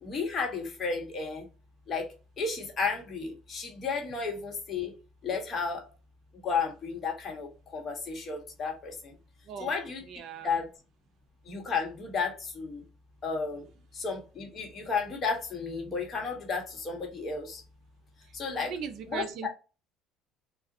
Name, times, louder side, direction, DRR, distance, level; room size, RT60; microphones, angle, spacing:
voice 1, 0.0-1.4 1.9-4.9 5.2-5.8 6.4-9.2 9.6-10.0 10.4-10.7 11.4-12.8 13.2-13.6 13.9-17.6 18.3-18.7 19.1-19.2, left 5 dB, 35° left, 1.2 m, -33 dB
voice 2, 10.0-10.5 18.5-19.5, right 7 dB, 55° right, 0.6 m, -38 dB
3.8 x 2.4 x 2.6 m
cardioid pair, 130°, 0 cm